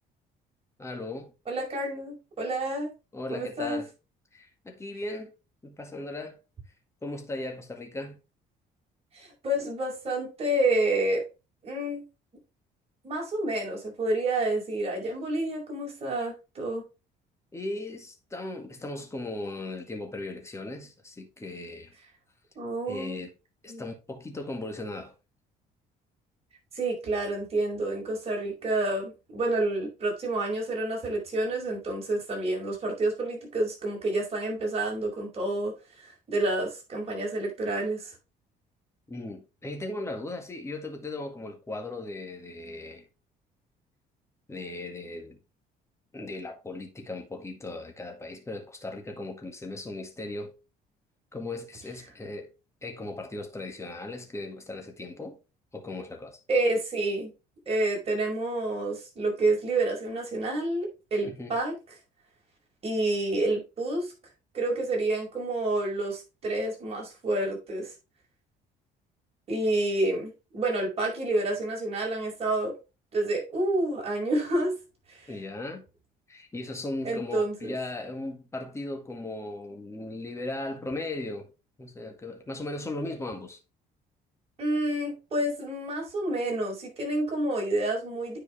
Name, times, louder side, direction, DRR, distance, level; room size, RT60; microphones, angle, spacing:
voice 1, 0.8-1.3 3.1-3.9 4.3-5.3 5.6-6.4 7.0-8.2 17.5-21.9 22.9-23.3 23.6-25.1 39.1-43.1 44.5-45.4 46.1-50.5 51.3-52.5 52.8-55.4 55.7-56.4 61.2-61.6 75.3-75.8 76.3-81.5 81.8-83.6, left 2 dB, 15° left, 1.9 m, -37 dB
voice 2, 1.5-2.9 3.3-3.8 9.1-11.2 11.6-12.0 13.0-16.9 22.6-23.2 23.7-23.8 26.7-38.1 56.5-57.3 57.7-61.7 62.8-64.1 64.5-67.9 69.5-72.8 73.1-74.8 75.1-75.3 77.0-77.7 84.6-88.4, right 2 dB, 35° right, 5.3 m, -29 dB
9.7 x 5.0 x 3.3 m
cardioid pair, 110°, 17 cm